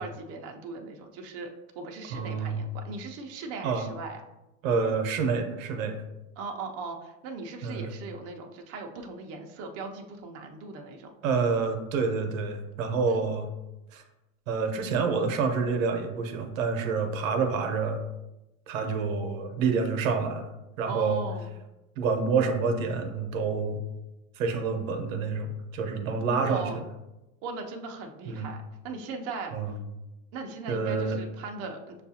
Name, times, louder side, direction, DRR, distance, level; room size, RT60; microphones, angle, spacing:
voice 1, 0.0-1.5 1.8-4.2 6.4-11.1 13.1-13.3 20.9-21.5 26.4-26.8 27.4-29.5 30.3-32.0, right 3 dB, 40° right, 3 dB, 0.5 m, -38 dB
voice 2, 2.1-2.7 3.6-3.9 4.6-6.0 7.6-7.9 11.2-13.5 13.9-14.0 14.5-18.0 18.7-20.5 20.8-21.2 22.0-23.8 24.4-26.7 28.3-28.5 29.5-29.7 30.7-31.2, right 5 dB, 85° right, 6 dB, 0.8 m, -28 dB
6.4 x 2.4 x 2.7 m, 0.98 s
supercardioid pair, 130°, 39 cm